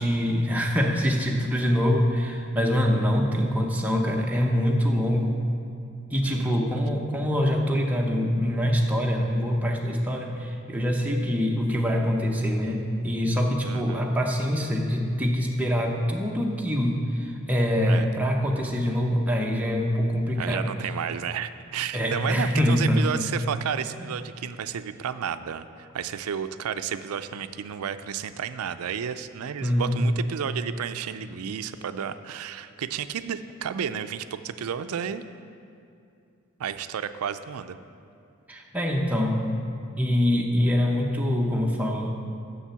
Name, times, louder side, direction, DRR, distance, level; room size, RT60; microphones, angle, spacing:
voice 1, 0.0-5.4 6.1-20.7 21.9-23.1 29.6-30.0 38.5-39.6 40.0-42.2, equal, 5° right, 0 dB, 0.7 m, -24 dB
voice 2, 13.7-14.0 17.9-18.1 20.4-35.2 36.6-37.8, right 8 dB, 80° right, 12 dB, 0.4 m, -32 dB
7.2 x 6.8 x 6.9 m, 2.5 s
head